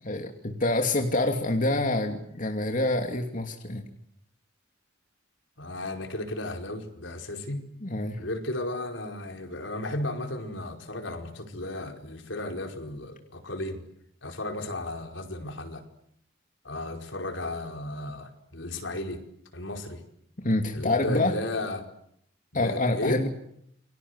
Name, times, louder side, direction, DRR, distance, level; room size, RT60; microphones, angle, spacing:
voice 1, 0.1-3.8 7.8-8.2 20.4-21.4 22.5-23.3, left 2 dB, 45° left, 4 dB, 2.7 m, -26 dB
voice 2, 5.6-7.6 8.2-13.8 14.2-15.8 16.6-19.2 19.5-20.0 20.7-21.8 22.5-23.2, left 1 dB, 75° left, 4 dB, 5.1 m, -34 dB
29.5 x 23.0 x 8.2 m, 0.72 s
head